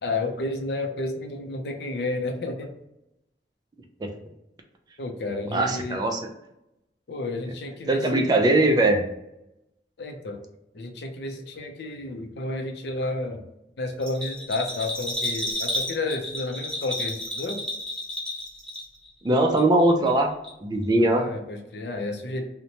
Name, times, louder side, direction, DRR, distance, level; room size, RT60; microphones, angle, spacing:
voice 1, 0.0-2.7 5.0-6.0 7.1-8.4 10.0-10.4 10.7-13.4 13.8-17.6 21.0-22.5, left 2 dB, 65° left, 4 dB, 0.5 m, -31 dB
voice 2, 5.5-6.2 7.9-9.0 19.2-20.3 20.6-21.2, right 1 dB, 25° right, 3 dB, 0.3 m, -20 dB
Bell, 14.0-19.1 19.4-20.2 20.4-20.5, left 1 dB, 5° left, 0.7 m, -31 dB
2.8 x 2.1 x 2.7 m, 0.88 s
head